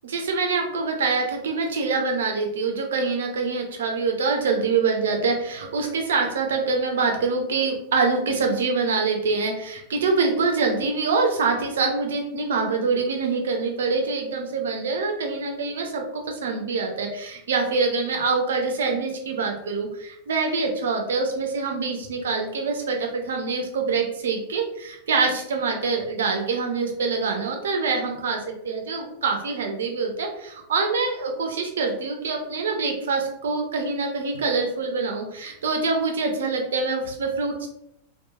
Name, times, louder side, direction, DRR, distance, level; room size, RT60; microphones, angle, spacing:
voice 1, 0.0-37.7, right 4 dB, 65° right, 3 dB, 0.5 m, -25 dB
2.9 x 2.2 x 2.3 m, 0.79 s
figure-of-eight pair, 90°, 0 cm